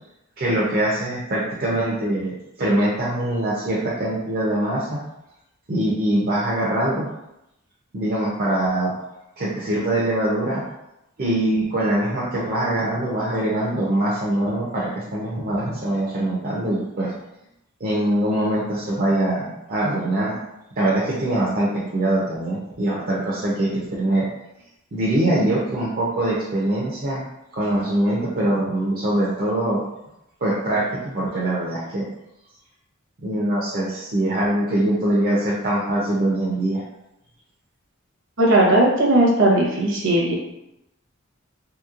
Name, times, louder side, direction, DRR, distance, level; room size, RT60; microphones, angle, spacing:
voice 1, 0.4-5.0 5.7-7.1 7.9-8.9 9.4-10.6 11.2-17.1 17.8-20.4 20.8-24.3 24.9-27.2 27.5-29.8 30.4-32.1 33.2-36.8, right 1 dB, 45° right, -4 dB, 0.5 m, -23 dB
voice 2, 38.4-40.4, right 1 dB, 65° right, -2 dB, 0.8 m, -17 dB
3.2 x 2.9 x 2.4 m, 0.88 s
head